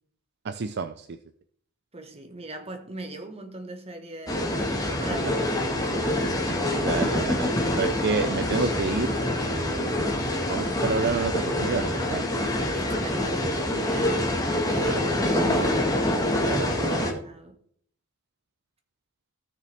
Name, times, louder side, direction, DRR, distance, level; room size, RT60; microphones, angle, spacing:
voice 1, 0.4-1.2 6.8-7.5 7.8-9.1 9.5-10.0 10.5-12.2 14.8-15.8 16.4-17.1, right 4 dB, 50° right, 0.5 m, -30 dB
voice 2, 1.9-4.6 5.0-5.6 6.2-6.6 7.4-7.8 12.5-14.4 14.7-15.5 17.2-17.6, right 2 dB, 25° right, 1.4 m, -40 dB
sound 1, 4.3-17.1, left 1 dB, 15° left, 1.5 m, -26 dB
15.0 x 6.7 x 3.4 m
head